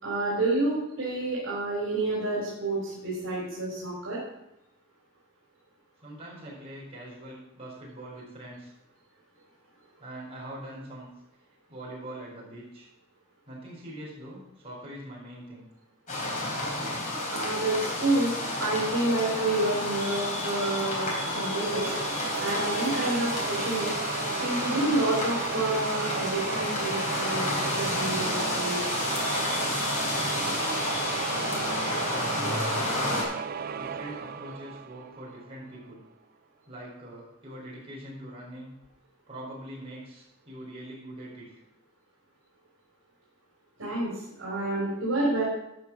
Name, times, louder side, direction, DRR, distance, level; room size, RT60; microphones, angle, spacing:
voice 1, 0.0-4.2 17.3-18.3 18.6-21.9 22.4-23.9 24.4-28.8 43.8-44.1 44.4-45.4, right 2 dB, 75° right, -5 dB, 3.8 m, -29 dB
voice 2, 6.0-8.7 10.0-11.1 11.7-12.9 13.5-15.7 31.7-33.1 33.7-36.0 36.7-38.7 39.3-41.5, right 1 dB, 30° right, -6 dB, 4.8 m, -43 dB
sound 1, 16.1-33.2, left 1 dB, 40° left, 3.6 m, -30 dB
sound 2, 21.1-35.7, right 6 dB, 45° right, 0.4 m, -35 dB
12.0 x 6.0 x 6.2 m, 0.87 s
head